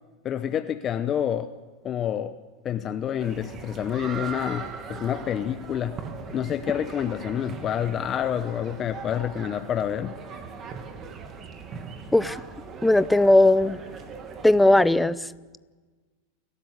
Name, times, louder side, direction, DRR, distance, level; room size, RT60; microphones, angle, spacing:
voice 1, 0.2-1.5 1.8-2.3 2.6-6.0 6.3-10.2, left 9 dB, 30° left, 11 dB, 0.8 m, -28 dB
sound 1, 3.2-15.0, right 5 dB, 30° right, 2.5 m, -40 dB
voice 2, 12.8-13.8 14.4-15.2, left 1 dB, 5° left, 16 dB, 0.6 m, -18 dB
29.5 x 12.5 x 8.1 m, 1.3 s
hypercardioid pair, 120°, 0 cm